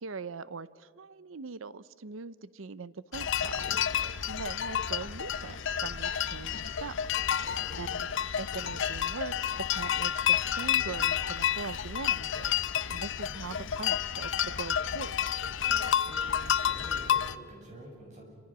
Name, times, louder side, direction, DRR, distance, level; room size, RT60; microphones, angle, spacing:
voice 1, 0.0-3.6 4.0-7.2 7.8-8.1 8.4-12.5 12.9-15.2, right 4 dB, 70° right, 17 dB, 0.7 m, -41 dB
sound 1, 3.1-17.4, left 9 dB, 65° left, 0.7 m, -30 dB
voice 2, 7.4-7.8 15.6-16.3 16.6-18.2, right 1 dB, 35° right, -1 dB, 7.8 m, -48 dB
28.5 x 26.0 x 6.1 m, 2.1 s
head